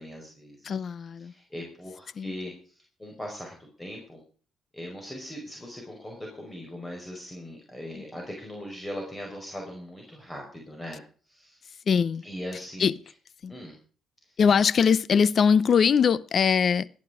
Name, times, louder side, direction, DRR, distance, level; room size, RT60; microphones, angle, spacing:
voice 1, 0.0-0.7 1.3-2.5 3.0-4.2 4.7-11.0 11.3-11.6 12.2-12.9 13.5-13.7, left 1 dB, 15° left, 5.1 m, -39 dB
voice 2, 0.6-1.3 2.2-2.3 8.0-8.1 11.9-12.2 12.8-12.9 13.4-13.5 14.4-16.9, left 6 dB, 50° left, 0.8 m, -22 dB
17.5 x 10.0 x 5.0 m
cardioid pair, 90°, 0 cm